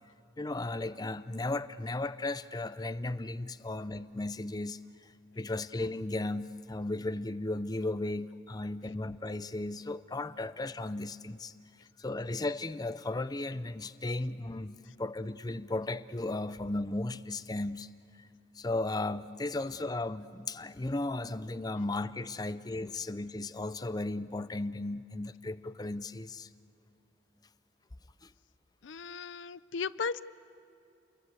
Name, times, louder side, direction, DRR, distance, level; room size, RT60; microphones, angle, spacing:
voice 1, 0.4-11.5 12.0-17.9 18.1-18.3 18.5-26.5 28.2-28.3, left 2 dB, 20° left, 12 dB, 0.5 m, -35 dB
voice 2, 28.8-30.2, left 5 dB, 75° left, 17 dB, 0.5 m, -36 dB
28.0 x 22.0 x 8.2 m, 2.5 s
head